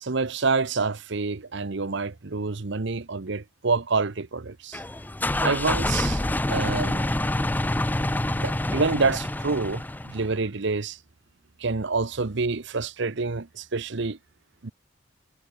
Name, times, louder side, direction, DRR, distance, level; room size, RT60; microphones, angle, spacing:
voice 1, 0.0-4.8 5.4-7.2 8.3-11.0 11.6-14.2 14.6-14.7, right 4 dB, 60° right, 0.9 m, -27 dB
sound 1, 4.7-10.3, left 1 dB, 10° left, 0.5 m, -27 dB
head